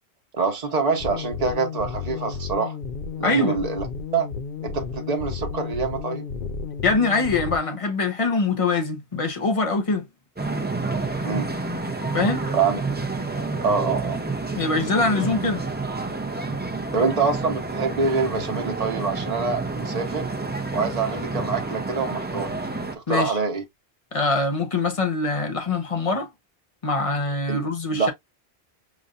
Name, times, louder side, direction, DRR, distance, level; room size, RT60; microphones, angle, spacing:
voice 1, 0.3-2.8 3.2-3.9 4.1-4.3 4.6-6.2 11.2-11.5 12.5-12.8 13.6-14.2 16.9-20.3 20.7-22.5 23.1-23.6 27.5-27.6 27.9-28.1, right 4 dB, 40° right, 1.1 m, -25 dB
sound 1, 1.0-7.6, left 5 dB, 60° left, 0.6 m, -33 dB
voice 2, 3.2-3.6 6.8-10.1 12.1-12.4 14.5-15.6 23.1-23.4 24.1-26.3 26.8-28.1, left 3 dB, 35° left, 0.9 m, -23 dB
sound 2, 10.4-22.9, right 3 dB, 15° right, 0.4 m, -29 dB
5.1 x 2.6 x 2.4 m
omnidirectional pair, 1.1 m